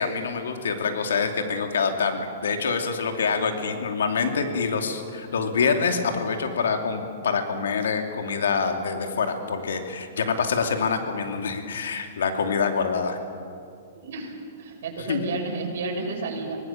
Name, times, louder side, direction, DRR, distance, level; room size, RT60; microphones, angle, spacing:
voice 1, 0.0-13.2 15.0-15.2, left 5 dB, 85° left, 5 dB, 2.7 m, -26 dB
voice 2, 13.9-16.6, right 3 dB, 65° right, -1 dB, 6.8 m, -32 dB
25.5 x 19.5 x 7.4 m, 2.3 s
hypercardioid pair, 140°, 0 cm